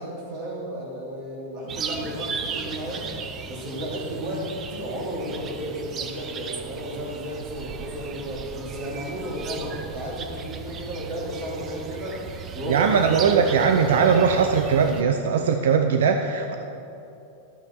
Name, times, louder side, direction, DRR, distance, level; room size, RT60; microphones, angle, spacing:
voice 1, 0.0-4.4 4.7-13.4 13.8-14.3, equal, 40° right, -3 dB, 2.9 m, -33 dB
sound 1, 1.7-15.0, right 6 dB, 20° right, 0.5 m, -36 dB
voice 2, 12.7-16.6, right 6 dB, 80° right, 6 dB, 0.6 m, -20 dB
12.0 x 8.8 x 4.5 m, 2.9 s
supercardioid pair, 165°, 0 cm